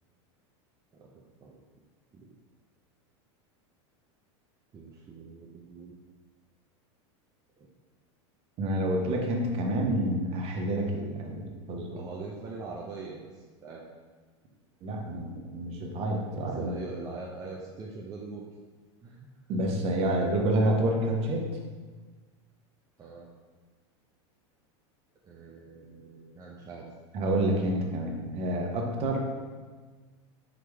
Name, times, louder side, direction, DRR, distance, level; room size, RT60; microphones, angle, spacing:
voice 1, 0.9-1.6 2.1-2.3 4.7-5.9 7.6-7.7 11.9-13.8 16.4-18.5 19.0-19.3 23.0-23.3 25.2-26.9, right 4 dB, 25° right, -3 dB, 0.5 m, -43 dB
voice 2, 8.6-12.0 14.8-16.7 19.5-21.4 27.1-29.2, right 1 dB, 40° right, 1 dB, 0.9 m, -28 dB
5.0 x 3.0 x 3.4 m, 1.4 s
supercardioid pair, 110°, 15 cm